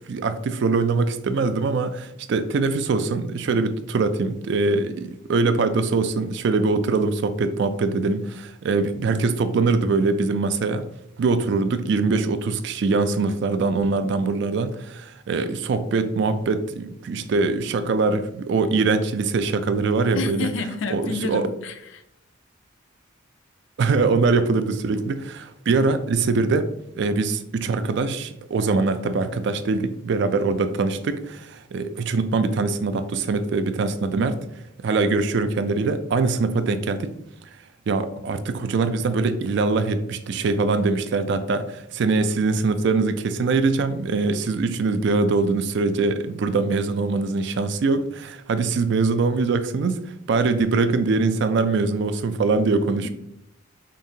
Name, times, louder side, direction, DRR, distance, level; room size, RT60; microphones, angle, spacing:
voice 1, 0.1-10.8 11.2-20.5 20.9-21.5 23.8-26.7 26.9-34.4 34.8-37.1 37.9-53.1, right 3 dB, 55° right, 11 dB, 0.3 m, -23 dB
voice 2, 20.1-22.0, left 3 dB, 65° left, 8 dB, 0.5 m, -29 dB
5.1 x 2.8 x 2.7 m, 0.80 s
head